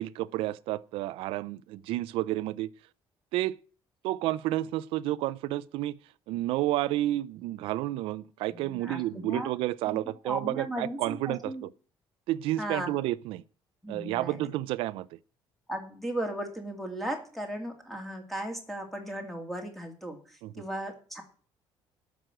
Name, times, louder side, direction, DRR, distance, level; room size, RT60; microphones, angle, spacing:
voice 1, 0.0-2.7 3.3-3.6 4.0-6.0 6.3-11.7 12.3-13.4 13.9-15.2 20.4-20.6, right 15 dB, 90° right, 0.5 m, -31 dB
voice 2, 8.5-9.5 9.9-10.0 10.2-11.6 12.6-12.9 13.8-14.5 15.7-21.2, right 1 dB, ahead, 2.5 m, -36 dB
12.5 x 6.2 x 9.1 m
cardioid pair, 160°, 9 cm